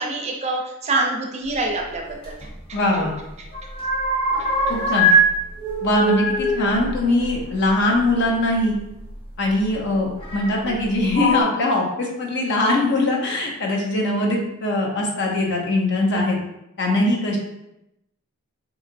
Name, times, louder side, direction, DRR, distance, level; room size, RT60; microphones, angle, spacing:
voice 1, 0.0-2.4, right 2 dB, 30° right, 1 dB, 0.5 m, -25 dB
sound 1, 2.2-3.2 3.4-5.3 5.6-8.1 9.1-9.2 10.2-10.8 11.1-11.4, right 1 dB, 25° left, 0.8 m, -22 dB
voice 2, 2.7-3.1 4.7-5.1 5.8-8.8 9.4-16.4 16.8-17.4, left 1 dB, 55° left, -1 dB, 0.8 m, -21 dB
4.0 x 2.8 x 2.5 m, 0.86 s
head